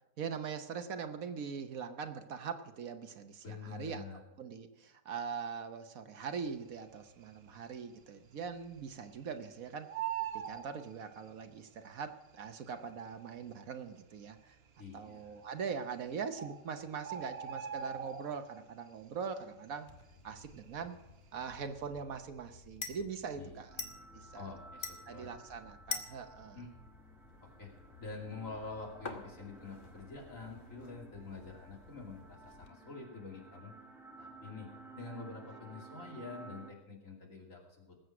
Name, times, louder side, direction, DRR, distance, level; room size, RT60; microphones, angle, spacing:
voice 1, 0.2-10.0 10.3-14.6 14.9-20.0 20.2-21.0 21.3-23.9 24.1-24.5 25.0-26.6, right 6 dB, 65° right, 8 dB, 1.3 m, -42 dB
voice 2, 3.4-4.2 14.8-15.4 23.4-23.6 24.3-25.3 26.5-26.7 27.4-27.7 28.0-33.7 34.2-34.7 35.0-37.9, left 4 dB, 55° left, 0 dB, 3.2 m, -47 dB
Bird, 7.0-7.6 7.9-8.0 8.2-9.4 9.7-11.5 12.4-12.5 13.1-13.2 13.4-13.5 14.2-14.6 15.6-15.7 16.0-16.1 16.4-18.7 19.0-19.3 19.6-21.0 21.3-21.6, right 9 dB, 45° right, 1.0 m, -41 dB
sound 1, 19.9-32.7, left 4 dB, 35° left, 1.2 m, -49 dB
sound 2, 23.7-36.7, right 3 dB, ahead, 1.2 m, -55 dB
19.5 x 7.9 x 6.0 m, 0.96 s
omnidirectional pair, 1.6 m